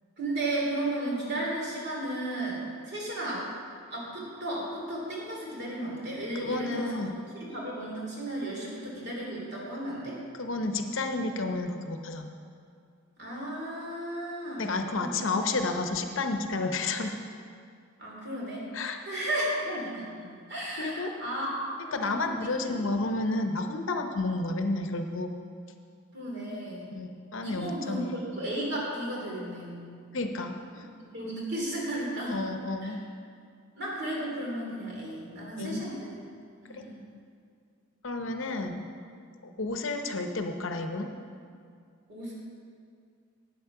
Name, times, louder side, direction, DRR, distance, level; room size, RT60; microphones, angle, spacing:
voice 1, 0.2-3.5 3.9-7.1 7.4-10.2 13.2-15.3 18.0-18.6 19.0-22.9 26.1-26.9 27.4-29.8 31.0-32.4 32.8-32.9 33.8-36.1 36.6-37.0 42.1-42.3, right 1 dB, 50° right, -4 dB, 2.8 m, -34 dB
voice 2, 6.3-7.2 10.4-12.3 14.6-17.2 18.7-19.0 20.8-21.1 21.9-25.3 26.9-28.1 30.1-30.9 32.3-33.0 35.6-35.8 36.7-36.9 38.0-38.9 39.6-41.1, left 2 dB, 65° left, 5 dB, 0.7 m, -31 dB
9.2 x 8.1 x 5.8 m, 2.3 s
head